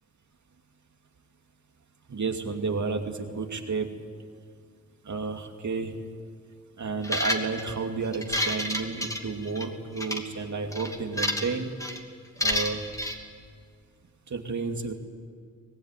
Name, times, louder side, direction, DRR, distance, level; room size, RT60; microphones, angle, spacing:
voice 1, 2.1-3.9 5.0-5.9 6.8-11.7 12.4-12.8 14.3-14.9, right 4 dB, 60° right, 4 dB, 2.6 m, -31 dB
sound 1, 7.0-7.7 8.1-9.7 10.0-10.2 10.7-11.5 11.8-12.0 12.4-13.2, left 1 dB, 10° left, 2.8 m, -29 dB
24.5 x 18.5 x 10.0 m, 2.1 s
cardioid pair, 65°, 32 cm